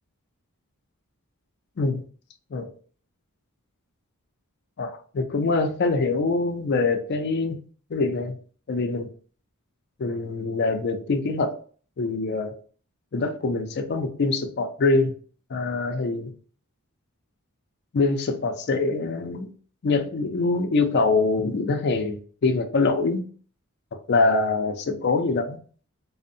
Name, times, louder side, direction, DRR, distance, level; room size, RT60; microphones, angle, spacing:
voice 1, 4.8-7.6 7.9-8.4 8.7-9.1 10.0-11.6 12.0-12.5 13.1-15.1 15.5-16.3 17.9-19.5 19.8-23.2 24.1-25.6, left 3 dB, 50° left, 0.4 m, -24 dB
2.5 x 2.0 x 2.5 m
head